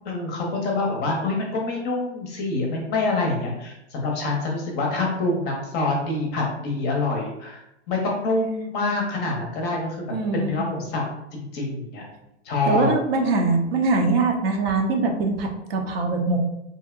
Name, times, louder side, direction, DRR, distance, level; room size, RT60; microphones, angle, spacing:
voice 1, 0.0-7.6 7.9-11.0 11.3-12.0 12.4-12.9, left 2 dB, 30° left, 0 dB, 0.6 m, -26 dB
voice 2, 10.1-10.5 12.7-16.4, right 3 dB, 55° right, 3 dB, 0.6 m, -22 dB
2.7 x 2.0 x 2.3 m, 0.85 s
hypercardioid pair, 110°, 35 cm